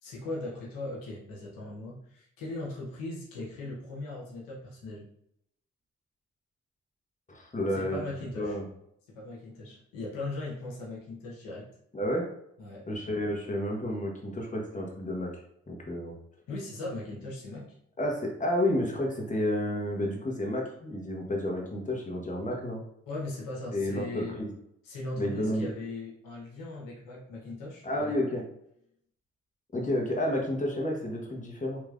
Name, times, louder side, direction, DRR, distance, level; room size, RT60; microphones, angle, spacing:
voice 1, 0.0-5.1 7.8-8.6 9.1-11.7 12.6-12.9 16.5-17.7 23.1-24.4 24.8-28.2, left 2 dB, 90° left, -4 dB, 0.9 m, -39 dB
voice 2, 7.3-8.0 8.4-8.6 11.9-12.3 12.9-15.4 15.7-16.1 18.0-22.8 23.7-24.5 25.2-25.7 27.8-28.4 29.7-31.8, left 1 dB, 25° left, -1 dB, 1.2 m, -30 dB
3.2 x 2.9 x 2.5 m, 0.74 s
supercardioid pair, 45°, 33 cm